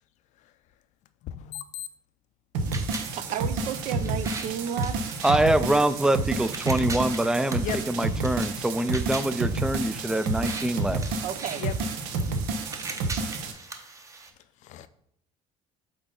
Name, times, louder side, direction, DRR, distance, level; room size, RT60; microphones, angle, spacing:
voice 1, 1.2-1.9 5.7-5.9 7.6-7.9 11.6-11.8 14.6-14.9, left 11 dB, 60° left, 13 dB, 0.5 m, -36 dB
sound 1, 2.5-13.5, right 3 dB, 90° right, 0.8 m, -30 dB
sound 2, 2.7-14.3, right 3 dB, 25° right, 0.8 m, -41 dB
voice 2, 3.1-5.2 7.5-7.6 10.0-10.1 11.2-11.6, right 9 dB, 60° right, 13 dB, 0.6 m, -33 dB
voice 3, 5.2-11.0, right 1 dB, 5° right, 14 dB, 0.3 m, -25 dB
7.7 x 3.9 x 3.8 m, 0.73 s
cardioid pair, 105°, 14 cm